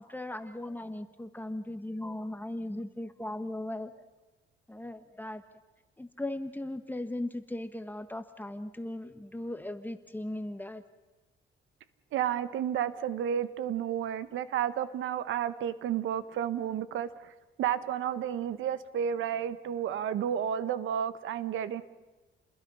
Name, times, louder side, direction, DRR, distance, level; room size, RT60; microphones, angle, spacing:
voice 1, 0.0-4.0 4.7-5.4 6.0-10.8, left 1 dB, 10° left, 9 dB, 1.4 m, -38 dB
voice 2, 12.1-17.3 17.6-21.8, right 9 dB, 80° right, 13 dB, 1.3 m, -31 dB
29.5 x 21.0 x 5.6 m, 1.2 s
cardioid pair, 90°, 20 cm